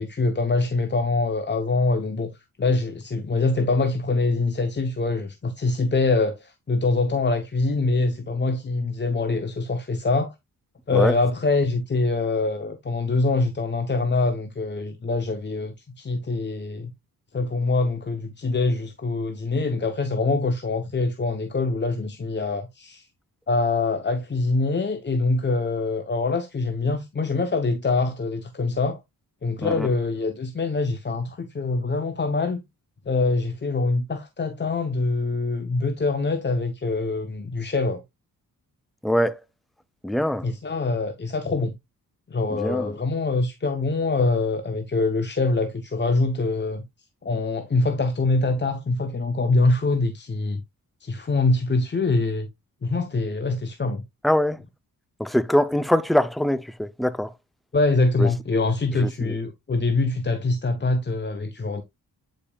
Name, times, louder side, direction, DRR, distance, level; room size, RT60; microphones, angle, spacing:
voice 1, 0.0-2.3 2.6-10.3 10.9-16.9 17.3-23.1 23.5-29.0 29.4-32.6 33.1-38.0 40.4-41.7 42.3-46.8 47.2-50.6 51.0-52.5 52.8-54.0 57.7-61.8, left 3 dB, 30° left, 0.8 m, -24 dB
voice 2, 39.0-39.4 40.0-40.5 42.5-42.9 54.2-54.6 55.2-57.3 58.2-58.3 58.9-59.3, left 1 dB, ahead, 0.4 m, -23 dB
8.5 x 5.2 x 2.3 m
cardioid pair, 70°, 36 cm